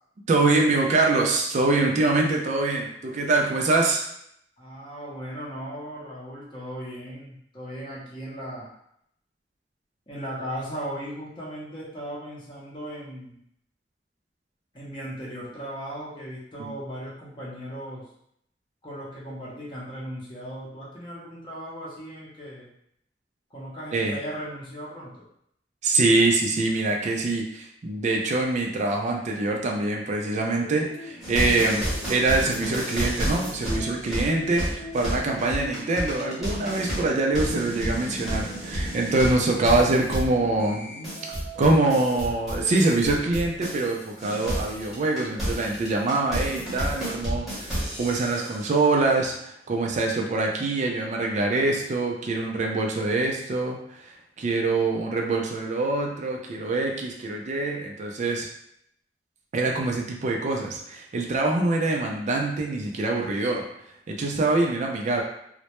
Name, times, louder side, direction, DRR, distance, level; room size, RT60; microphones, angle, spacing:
voice 1, 0.3-4.0 16.6-16.7 23.9-24.2 25.8-40.8 41.6-58.5 59.5-63.7 64.1-65.2, right 2 dB, 40° right, 0 dB, 0.3 m, -24 dB
voice 2, 4.6-8.7 10.1-13.4 14.7-18.0 18.8-22.7 23.5-25.2, equal, 30° left, -6 dB, 0.6 m, -37 dB
sound 1, 30.2-43.6, left 1 dB, 75° left, 0.5 m, -42 dB
sound 2, 31.2-43.9 44.2-48.6, equal, ahead, 0.8 m, -31 dB
2.1 x 2.0 x 2.9 m, 0.73 s
head